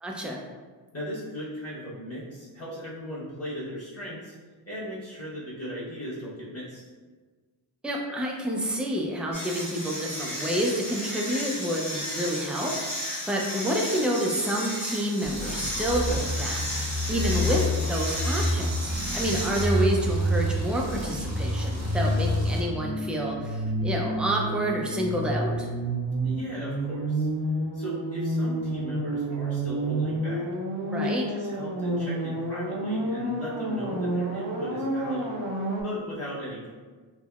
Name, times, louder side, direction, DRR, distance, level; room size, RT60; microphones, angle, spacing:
voice 1, 0.0-0.4 7.8-12.7 13.1-17.6 17.9-25.7 30.9-31.2, equal, ahead, -1 dB, 0.3 m, -29 dB
voice 2, 0.9-4.3 4.6-6.8 26.2-27.3 27.7-30.5 31.0-35.4 35.8-36.7, equal, 30° left, -8 dB, 1.1 m, -37 dB
sound 1, 9.3-22.2, equal, 80° left, 1.4 m, -35 dB
sound 2, 15.2-22.6, left 1 dB, 35° right, 0.7 m, -33 dB
sound 3, 15.9-35.8, right 1 dB, 80° right, 0.6 m, -29 dB
3.4 x 2.1 x 2.3 m, 1.4 s
wide cardioid pair, 80°, 46 cm